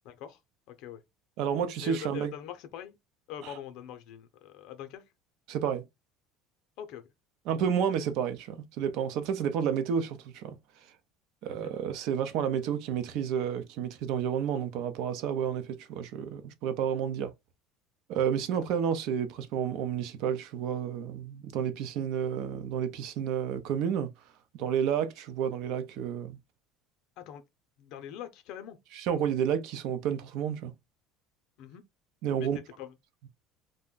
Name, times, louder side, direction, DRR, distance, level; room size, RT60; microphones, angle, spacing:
voice 1, 0.0-0.4 0.7-1.0 1.8-3.0 3.3-5.0 6.8-7.1 11.5-11.7 18.5-18.6 27.2-27.4 27.8-28.8 31.6-31.8 32.4-32.9, left 9 dB, 60° left, 0.6 m, -43 dB
voice 2, 1.4-2.3 3.4-3.5 5.5-5.8 7.5-10.6 11.4-17.3 18.1-24.1 24.6-26.4 28.9-30.7 32.2-32.6, right 8 dB, 60° right, 0.5 m, -30 dB
2.5 x 2.2 x 3.6 m
cardioid pair, 145°, 0 cm